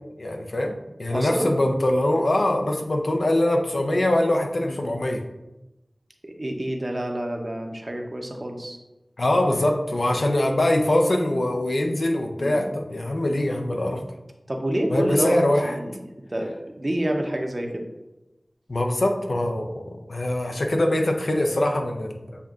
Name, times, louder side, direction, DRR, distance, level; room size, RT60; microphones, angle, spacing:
voice 1, 0.2-5.2 9.2-14.0 14.9-15.7 18.7-22.5, left 1 dB, 75° left, 3 dB, 0.6 m, -23 dB
voice 2, 1.1-1.6 4.6-4.7 6.2-8.8 12.4-12.6 14.5-15.4 15.6-16.0 16.3-17.8, right 1 dB, 40° right, 2 dB, 0.7 m, -28 dB
7.9 x 2.7 x 2.4 m, 0.98 s
wide cardioid pair, 45°, 0 cm